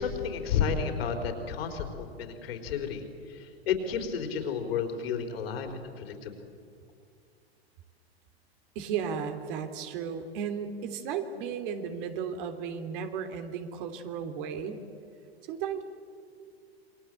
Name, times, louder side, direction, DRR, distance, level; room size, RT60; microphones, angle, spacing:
voice 1, 0.0-6.3, left 6 dB, 70° left, 5 dB, 4.6 m, -32 dB
voice 2, 8.7-14.9 15.5-15.8, right 7 dB, 55° right, 7 dB, 3.1 m, -34 dB
28.0 x 23.0 x 8.2 m, 2.4 s
hypercardioid pair, 105°, 32 cm